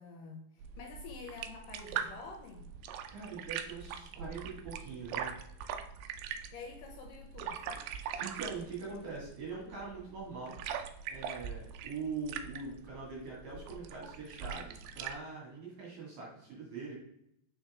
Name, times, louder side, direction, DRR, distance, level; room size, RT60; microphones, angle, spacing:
voice 1, 0.0-2.7 6.5-7.9, left 4 dB, 70° left, 2 dB, 2.4 m, -48 dB
sound 1, 0.6-15.2, right 8 dB, 80° right, 2.2 m, -42 dB
voice 2, 3.1-5.3 8.2-10.6 11.1-17.0, right 4 dB, 65° right, -5 dB, 3.4 m, -43 dB
7.2 x 5.4 x 3.5 m, 0.79 s
omnidirectional pair, 4.3 m